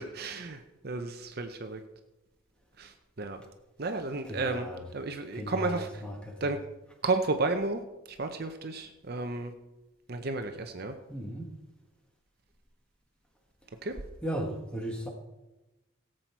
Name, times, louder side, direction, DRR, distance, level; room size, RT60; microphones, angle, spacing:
voice 1, 0.0-1.8 2.8-3.4 3.8-6.0 6.4-6.6 7.0-7.8 8.1-9.5 10.1-10.9 13.8-14.0, right 3 dB, 45° right, 7 dB, 0.7 m, -32 dB
voice 2, 4.3-4.8 5.3-6.5 11.1-11.5 14.2-15.1, equal, 5° left, 1 dB, 1.5 m, -36 dB
17.0 x 7.7 x 4.6 m, 1.0 s
head